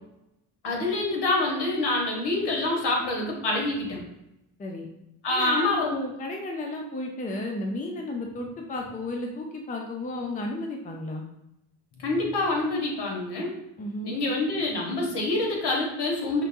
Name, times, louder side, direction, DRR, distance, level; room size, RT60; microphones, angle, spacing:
voice 1, 0.6-4.0 5.2-6.0 12.0-13.5 14.0-16.4, left 2 dB, 60° left, -1 dB, 1.3 m, -26 dB
voice 2, 5.3-11.2 13.8-14.1, left 2 dB, 20° left, 1 dB, 0.5 m, -33 dB
5.1 x 2.2 x 2.6 m, 0.88 s
cardioid pair, 80°, 46 cm